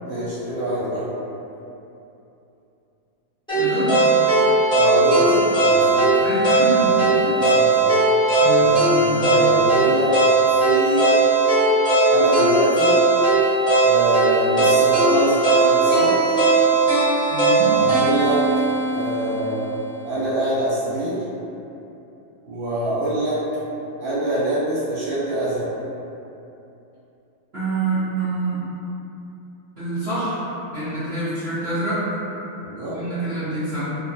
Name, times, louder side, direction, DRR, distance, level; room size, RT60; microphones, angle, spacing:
voice 1, 0.0-1.0 4.7-6.1 6.8-7.9 8.5-10.1 10.6-11.1 12.1-13.0 13.8-16.2 17.6-18.4 18.9-19.8 20.0-21.2 22.4-23.4 24.0-25.7 32.6-33.0, right 1 dB, 70° right, -11 dB, 1.5 m, -25 dB
sound 1, 3.5-19.6, right 3 dB, 5° left, 0.8 m, -18 dB
voice 2, 3.5-4.0 5.2-5.3 6.2-7.0 7.2-7.4 8.4-9.3 17.3-17.8 27.5-28.6 29.8-32.1 32.9-33.8, right 2 dB, 45° right, -17 dB, 0.8 m, -26 dB
3.4 x 2.1 x 2.7 m, 2.9 s
omnidirectional pair, 2.3 m